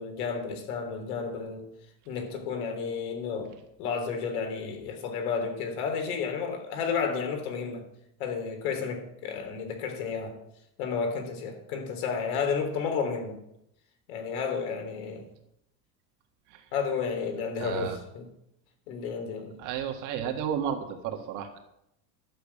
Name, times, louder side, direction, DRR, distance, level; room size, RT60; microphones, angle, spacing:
voice 1, 0.0-1.6 2.1-3.5 3.8-7.8 8.2-10.4 10.8-13.4 14.1-15.2 16.7-18.3 18.9-19.6, left 5 dB, 85° left, 5 dB, 3.6 m, -32 dB
voice 2, 17.6-18.0 19.6-21.6, right 8 dB, 45° right, 4 dB, 1.6 m, -32 dB
11.5 x 6.9 x 8.5 m, 0.79 s
cardioid pair, 170°, 43 cm